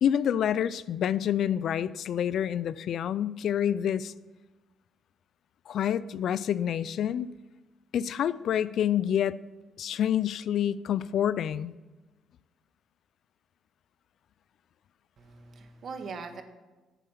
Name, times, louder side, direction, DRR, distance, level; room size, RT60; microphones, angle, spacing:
voice 1, 0.0-4.1 5.7-7.3 7.9-9.4 9.8-11.7, left 9 dB, 65° left, 18 dB, 0.4 m, -27 dB
voice 2, 15.2-16.4, right 5 dB, 55° right, 7 dB, 1.5 m, -41 dB
11.0 x 8.4 x 5.8 m, 1.2 s
cardioid pair, 90°, 0 cm